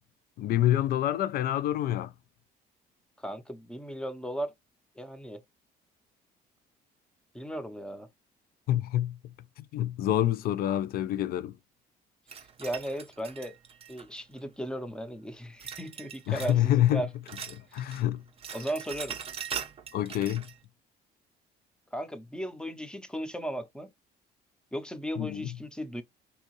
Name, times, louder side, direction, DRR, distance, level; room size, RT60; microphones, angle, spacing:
voice 1, 0.4-2.1 8.7-9.2 9.7-11.5 16.3-17.0 17.7-18.2 19.9-20.5 25.2-25.5, left 12 dB, 65° left, 0.4 m, -27 dB
voice 2, 3.2-4.5 5.0-5.4 7.3-8.1 12.3-13.5 13.9-17.1 17.7-18.0 18.5-19.2 21.9-23.9 24.7-26.0, right 1 dB, 5° left, 0.6 m, -36 dB
sound 1, 12.3-14.4 15.6-16.6 16.9-18.0 18.3-20.6, right 7 dB, 35° right, 0.6 m, -41 dB
3.5 x 2.8 x 2.9 m
cardioid pair, 110°, 17 cm